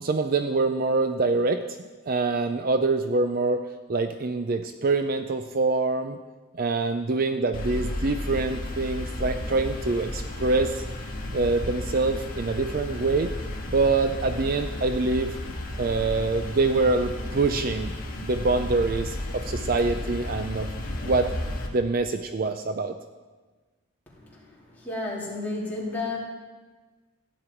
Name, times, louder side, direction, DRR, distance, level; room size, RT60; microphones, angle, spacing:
voice 1, 0.0-1.6 2.1-3.6 3.9-6.2 6.5-10.8 11.3-13.3 13.7-15.4 15.8-17.9 18.2-21.3 21.7-23.0, right 3 dB, 45° right, 8 dB, 0.5 m, -25 dB
sound 1, 7.5-21.7, left 1 dB, 40° left, 1.6 m, -33 dB
voice 2, 24.1-26.2, left 2 dB, 10° left, -6 dB, 3.0 m, -33 dB
15.0 x 9.4 x 4.5 m, 1.3 s
head